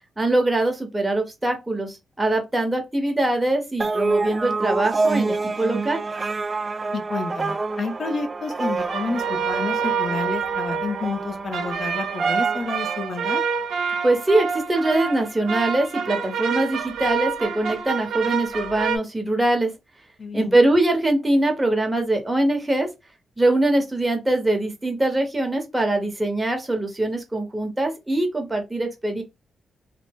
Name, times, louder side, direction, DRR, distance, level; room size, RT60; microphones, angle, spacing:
voice 1, 0.2-6.0 14.0-19.7 20.3-22.9 23.4-29.2, right 2 dB, 15° right, 1.0 m, -22 dB
sound 1, 3.8-13.6, right 3 dB, 35° right, 0.3 m, -28 dB
voice 2, 6.9-13.4 20.2-20.6, left 4 dB, 55° left, 0.7 m, -30 dB
sound 2, 8.8-19.0, right 6 dB, 75° right, 0.6 m, -27 dB
2.7 x 2.1 x 3.5 m
cardioid pair, 65°, 0 cm